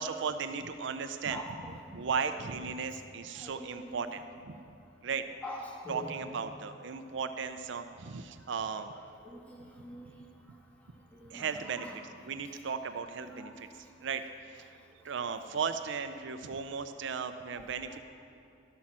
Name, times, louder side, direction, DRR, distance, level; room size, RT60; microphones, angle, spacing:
voice 1, 0.0-1.4 1.9-4.5 5.0-5.3 5.9-8.9 11.3-13.7 14.0-14.2 14.5-14.8 15.0-18.0, right 6 dB, 65° right, 9 dB, 0.5 m, -36 dB
voice 2, 1.3-2.0 2.2-2.3 3.3-4.1 4.4-4.5 5.4-6.1 9.2-10.1 11.1-12.0 13.2-13.6 17.5-18.0, equal, 10° left, -2 dB, 1.6 m, -45 dB
12.5 x 8.5 x 6.1 m, 2.6 s
head